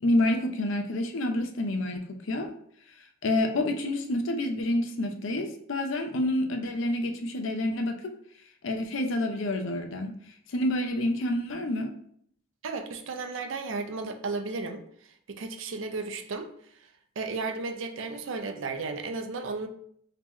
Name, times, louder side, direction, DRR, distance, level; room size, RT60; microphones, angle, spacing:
voice 1, 0.0-2.5 3.2-8.1 8.6-10.1 10.5-11.9, left 1 dB, 70° left, 5 dB, 0.5 m, -28 dB
voice 2, 12.6-14.8 15.3-16.5 17.2-19.7, right 3 dB, 70° right, 6 dB, 0.5 m, -34 dB
3.7 x 2.9 x 3.0 m, 0.65 s
head